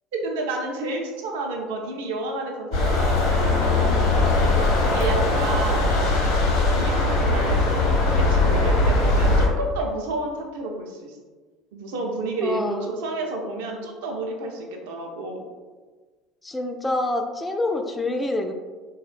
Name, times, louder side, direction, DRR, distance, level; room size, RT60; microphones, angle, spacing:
voice 1, 0.1-4.0 4.8-6.0 6.7-11.2 11.7-15.4, right 2 dB, 60° right, 1 dB, 0.5 m, -30 dB
sound 1, 2.7-9.5, left 2 dB, 55° left, 0.8 m, -20 dB
voice 2, 4.4-4.9 12.4-12.9 16.4-18.5, left 2 dB, 15° left, 4 dB, 0.3 m, -27 dB
3.6 x 2.1 x 2.4 m, 1.4 s
figure-of-eight pair, 65°, 0 cm